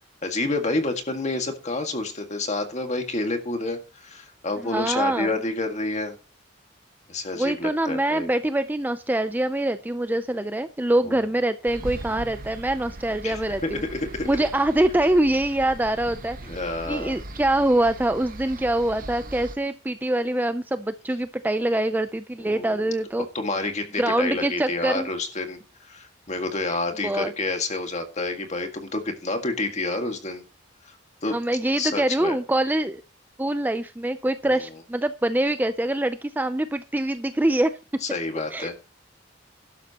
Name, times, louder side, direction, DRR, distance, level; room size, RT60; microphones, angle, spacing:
voice 1, 0.2-6.2 7.1-8.3 11.0-11.2 13.2-14.3 16.4-17.2 22.4-22.9 23.3-30.4 30.9-31.0 31.2-31.3 31.8-32.4 34.4-34.5 38.0-38.7, left 2 dB, 35° left, 5 dB, 1.9 m, -29 dB
voice 2, 4.6-5.3 7.3-13.8 14.2-16.4 16.9-23.2 24.0-25.1 27.0-27.3 31.3-33.0 33.4-37.7 38.5-38.7, right 1 dB, 10° right, 10 dB, 0.5 m, -24 dB
sound 1, 11.7-19.6, right 1 dB, 45° right, 1.1 m, -39 dB
13.0 x 11.5 x 2.9 m, 0.32 s
head